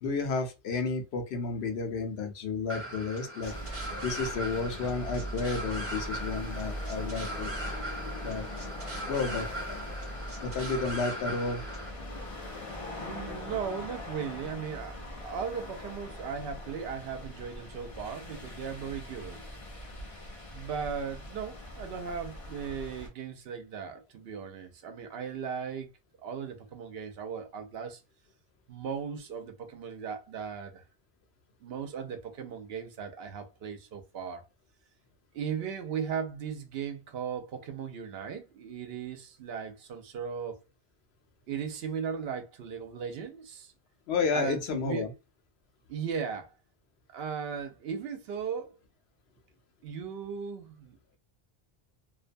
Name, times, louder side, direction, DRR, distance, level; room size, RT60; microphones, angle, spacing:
voice 1, 0.0-3.5 4.0-7.5 8.2-8.4 9.1-9.8 10.4-11.6 44.1-45.1, left 4 dB, 90° left, 0.9 m, -31 dB
sound 1, 2.7-11.9, right 1 dB, 15° right, 0.7 m, -39 dB
sound 2, 3.4-23.1, left 1 dB, 40° left, 0.6 m, -41 dB
voice 2, 13.0-19.4 20.5-25.9 26.2-28.0 28.7-30.8 31.6-34.4 35.3-40.6 41.5-43.7 44.3-45.1 45.9-46.5 47.1-48.8 49.8-51.2, right 7 dB, 75° right, 0.8 m, -37 dB
2.5 x 2.2 x 2.5 m
omnidirectional pair, 1.0 m